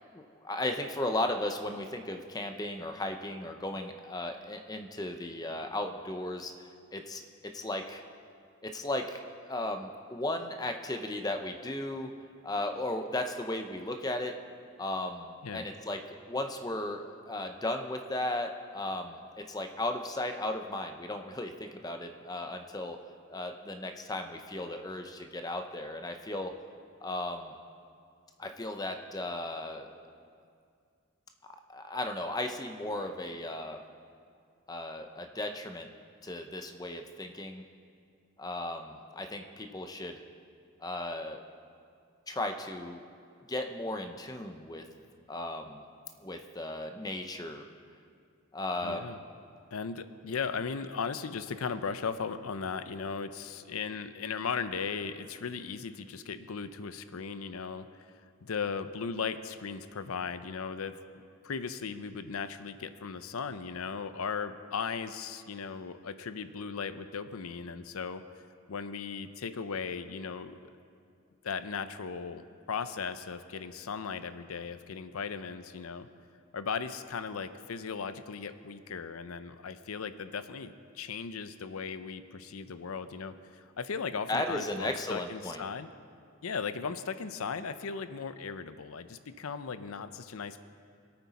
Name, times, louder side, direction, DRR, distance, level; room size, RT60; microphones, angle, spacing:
voice 1, 0.1-6.5 6.9-7.2 7.5-8.0 8.6-12.1 12.4-14.3 14.8-16.0 16.3-23.0 23.3-26.5 27.0-27.5 28.4-29.9 31.7-33.8 34.7-35.9 36.2-37.6 38.4-40.2 40.8-41.4 42.3-43.0 43.5-44.8 45.3-45.9 46.2-47.6 48.5-49.1 84.3-85.6, left 1 dB, 20° left, 5 dB, 0.6 m, -35 dB
voice 2, 48.8-49.2 49.7-57.9 58.4-68.2 68.7-70.6 71.4-76.1 76.5-85.9 86.4-90.6, left 5 dB, 85° left, 11 dB, 0.6 m, -37 dB
23.5 x 8.9 x 4.1 m, 2.3 s
head